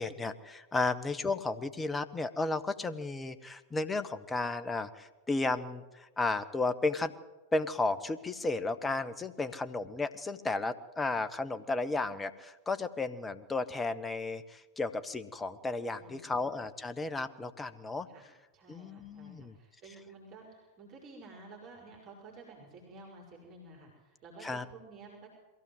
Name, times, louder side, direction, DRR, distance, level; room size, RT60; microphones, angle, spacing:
voice 1, 0.0-7.1 7.5-18.1 18.7-19.5 24.4-24.6, left 3 dB, 15° left, 11 dB, 1.2 m, -33 dB
voice 2, 16.0-16.5 18.1-25.3, right 3 dB, 35° right, 0 dB, 5.4 m, -52 dB
22.5 x 15.5 x 7.9 m, 1.1 s
figure-of-eight pair, 90°, 0 cm